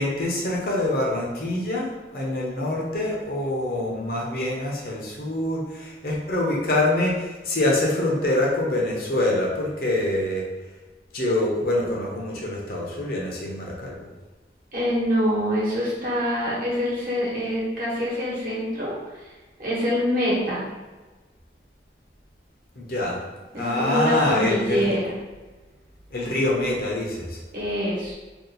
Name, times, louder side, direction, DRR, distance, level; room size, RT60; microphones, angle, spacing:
voice 1, 0.0-10.5 11.1-14.0 22.8-23.2 23.5-24.9 26.1-27.4, left 1 dB, 55° left, -2 dB, 0.7 m, -25 dB
voice 2, 14.7-19.3 19.6-20.7 23.5-25.1 27.5-28.1, equal, 50° right, -6 dB, 1.1 m, -25 dB
2.8 x 2.5 x 3.8 m, 1.2 s
head